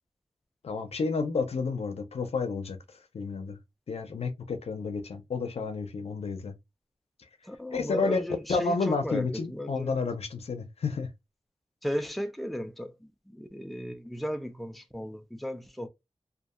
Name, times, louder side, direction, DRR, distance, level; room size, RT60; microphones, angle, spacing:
voice 1, 0.6-2.8 3.1-3.6 3.9-6.5 7.7-8.2 8.5-11.1, left 4 dB, 85° left, 0.6 m, -30 dB
voice 2, 7.4-10.0 11.8-15.9, equal, ahead, 0.4 m, -35 dB
2.7 x 2.4 x 2.4 m
wide cardioid pair, 90°, 10 cm